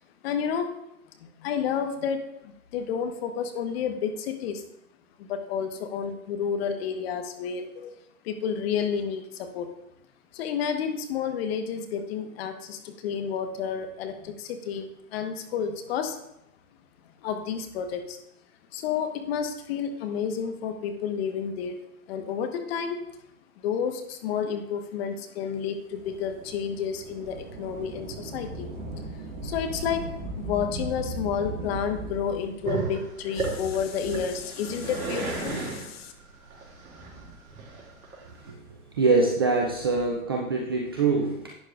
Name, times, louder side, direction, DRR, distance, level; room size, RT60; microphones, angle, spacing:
voice 1, 0.2-0.7 1.2-4.6 5.2-7.9 8.2-9.7 10.3-16.2 17.2-18.2 18.7-21.8 22.1-23.0 23.6-28.7 29.4-30.0 30.3-36.1, left 7 dB, 45° left, 6 dB, 1.3 m, -30 dB
Thunder / Rain, 25.9-34.9 35.6-35.7 36.6-37.9 39.4-40.2, right 2 dB, 45° right, 1.9 m, -39 dB
Growling, 32.6-38.5, right 4 dB, 65° right, 3.2 m, -33 dB
voice 2, 39.0-41.5, right 3 dB, 20° right, 0 dB, 0.3 m, -24 dB
11.5 x 9.0 x 2.5 m, 0.80 s
hypercardioid pair, 120°, 44 cm